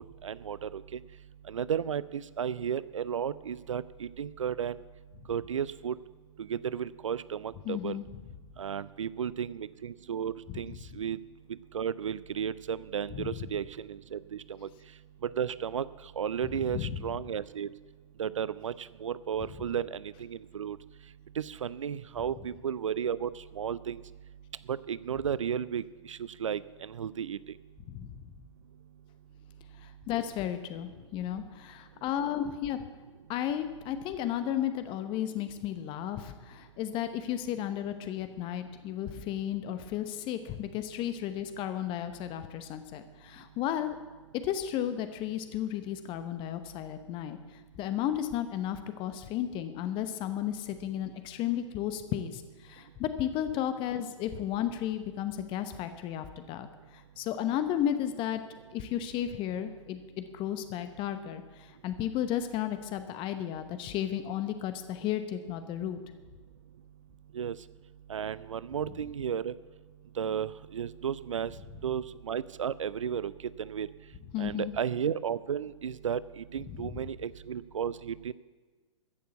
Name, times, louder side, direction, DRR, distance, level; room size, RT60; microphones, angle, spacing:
voice 1, 0.2-1.0 1.5-4.8 5.3-6.0 6.4-8.0 8.6-11.2 11.7-14.7 15.2-15.9 16.2-17.7 18.2-20.8 21.4-24.0 24.7-27.4 67.3-67.6 68.1-69.5 70.2-71.5 71.8-73.3 73.6-73.9 74.4-78.3, right 8 dB, 75° right, 18 dB, 0.4 m, -33 dB
voice 2, 7.6-8.0 10.5-10.6 13.1-13.3 16.7-17.0 27.9-28.2 29.8-32.8 33.3-44.0 44.4-47.4 47.8-56.7 56.9-58.4 58.7-66.0 74.3-74.7 76.7-76.9, left 11 dB, 30° left, 10 dB, 0.9 m, -33 dB
14.5 x 6.8 x 8.3 m, 1.3 s
figure-of-eight pair, 110°, 16 cm